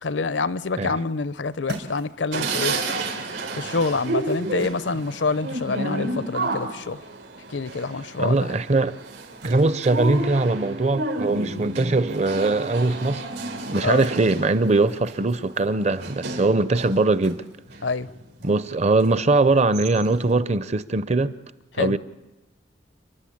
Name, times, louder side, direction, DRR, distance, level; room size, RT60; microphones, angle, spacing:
voice 1, 0.0-2.7 3.6-7.0 7.5-8.5 13.8-14.1 17.8-18.1 21.8-22.0, left 4 dB, 75° left, 0.7 m, -26 dB
sound 1, 1.1-7.9 8.3-18.5, right 1 dB, 75° right, 5.1 m, -46 dB
sound 2, 2.3-17.1 17.5-18.5 19.0-19.1 19.5-20.3, right 2 dB, 90° right, 4.6 m, -31 dB
voice 2, 8.2-9.0 9.4-13.2 13.7-17.4 18.4-21.4 21.8-22.0, right 3 dB, 35° right, 0.6 m, -21 dB
29.5 x 11.5 x 8.6 m
head